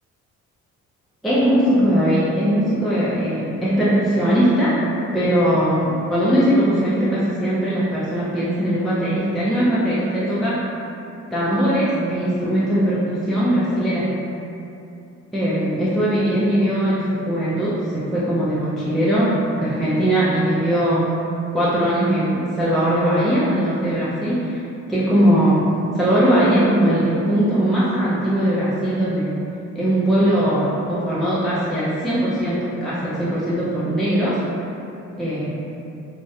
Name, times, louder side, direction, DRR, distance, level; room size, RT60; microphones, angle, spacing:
voice 1, 1.2-4.8 5.1-10.6 11.3-14.1 15.3-21.1 21.5-24.6 24.9-25.7 25.9-29.3 29.7-34.4 35.2-35.6, equal, ahead, -10 dB, 0.3 m, -20 dB
2.6 x 2.0 x 2.3 m, 2.7 s
cardioid pair, 90°, 30 cm